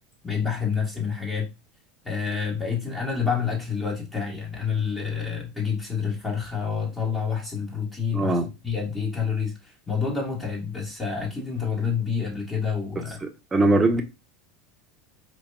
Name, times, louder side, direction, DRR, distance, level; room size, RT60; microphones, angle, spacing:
voice 1, 0.2-1.5 2.0-8.4 8.6-13.2, left 6 dB, 20° left, 1.2 m, -28 dB
voice 2, 8.1-8.5 13.2-14.0, right 2 dB, 20° right, 0.7 m, -21 dB
4.6 x 2.3 x 2.2 m
hypercardioid pair, 80°, 0 cm